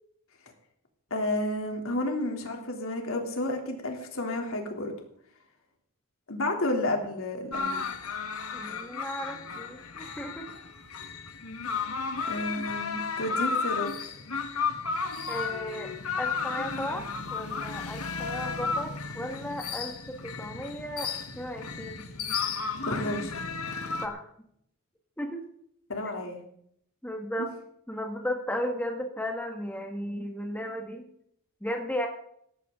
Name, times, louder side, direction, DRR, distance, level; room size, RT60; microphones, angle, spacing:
voice 1, 1.1-4.9 6.3-7.8 12.3-13.9 22.8-23.4 25.9-26.4, left 1 dB, 65° left, 2 dB, 3.3 m, -31 dB
sound 1, 7.5-24.1, left 5 dB, 85° left, 1.7 m, -33 dB
voice 2, 8.5-10.5 15.3-17.1 17.3-22.0 24.0-24.3 25.2-25.4 27.0-27.5 27.9-31.1 31.6-32.1, equal, 10° left, 2 dB, 1.9 m, -35 dB
18.0 x 14.0 x 3.9 m, 0.68 s
head